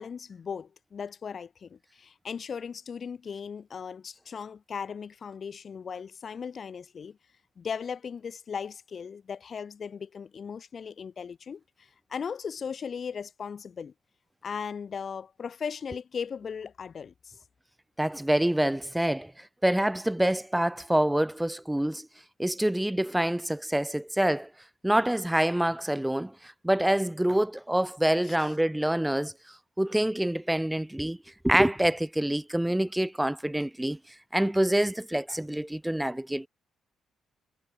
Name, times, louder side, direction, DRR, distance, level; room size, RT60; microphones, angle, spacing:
voice 1, 0.0-7.2 7.6-13.9 14.4-17.4 28.2-28.6, left 6 dB, 45° left, 0.5 m, -37 dB
voice 2, 18.0-19.3 19.6-22.1 22.4-24.5 24.8-26.3 26.6-29.3 29.8-31.2 31.4-34.0 34.3-36.5, right 1 dB, 5° right, 0.7 m, -26 dB
cardioid pair, 90°, 0 cm